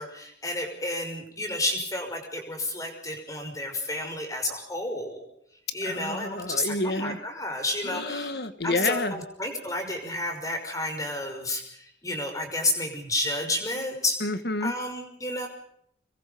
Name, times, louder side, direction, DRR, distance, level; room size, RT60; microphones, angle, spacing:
voice 1, 0.0-5.3 5.7-8.3 8.6-14.2 14.6-15.5, left 1 dB, 20° left, 4 dB, 5.7 m, -31 dB
voice 2, 5.8-7.2 7.8-9.2 14.2-14.7, left 2 dB, 60° left, 10 dB, 1.9 m, -29 dB
26.5 x 22.5 x 5.3 m, 0.69 s
head